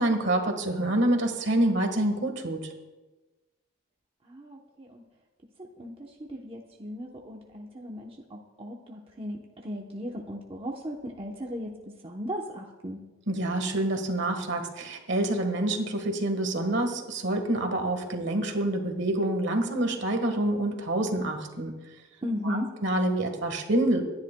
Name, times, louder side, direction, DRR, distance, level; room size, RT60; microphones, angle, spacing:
voice 1, 0.0-2.7 13.3-21.7 22.4-24.0, right 1 dB, 60° right, 5 dB, 1.5 m, -27 dB
voice 2, 4.2-5.0 5.8-13.0 22.2-22.7, equal, 25° right, 0 dB, 0.9 m, -37 dB
26.5 x 10.5 x 2.2 m, 1.2 s
head